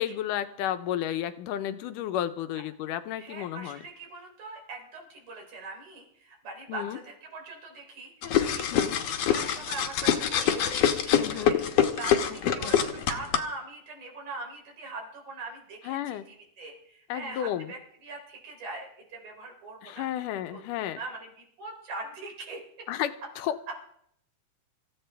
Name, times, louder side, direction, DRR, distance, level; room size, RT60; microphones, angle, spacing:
voice 1, 0.0-3.8 6.7-7.0 8.7-9.0 11.1-11.5 12.3-12.7 15.9-16.2 17.1-17.7 19.8-21.0 22.9-23.6, left 11 dB, 85° left, 11 dB, 2.4 m, -32 dB
voice 2, 3.2-20.0 20.5-22.6, right 3 dB, 70° right, 2 dB, 5.0 m, -42 dB
sound 1, 8.2-13.4, left 9 dB, 60° left, 1.9 m, -25 dB
26.0 x 15.0 x 3.4 m, 0.70 s
omnidirectional pair, 3.7 m